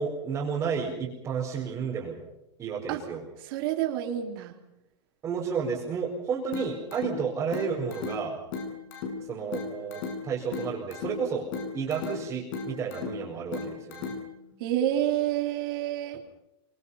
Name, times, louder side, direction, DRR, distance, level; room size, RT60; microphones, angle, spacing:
voice 1, 0.0-2.2 2.6-3.2 5.2-8.4 9.2-14.1, right 6 dB, 20° right, -5 dB, 4.9 m, -32 dB
voice 2, 3.4-4.6 14.6-16.2, right 11 dB, 50° right, 3 dB, 3.7 m, -28 dB
sound 1, 6.5-14.5, left 4 dB, 50° left, 7.6 m, -37 dB
27.5 x 25.5 x 5.7 m, 0.89 s
supercardioid pair, 170°, 14 cm